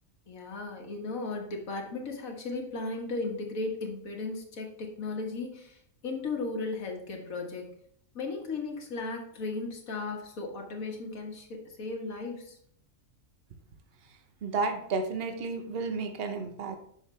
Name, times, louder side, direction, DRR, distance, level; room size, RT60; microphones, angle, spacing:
voice 1, 0.3-5.8 6.0-7.7 8.2-12.6, left 3 dB, 85° left, 1 dB, 1.8 m, -36 dB
voice 2, 14.4-16.8, right 4 dB, 50° right, 6 dB, 1.0 m, -32 dB
7.2 x 6.4 x 3.3 m, 0.64 s
omnidirectional pair, 1.4 m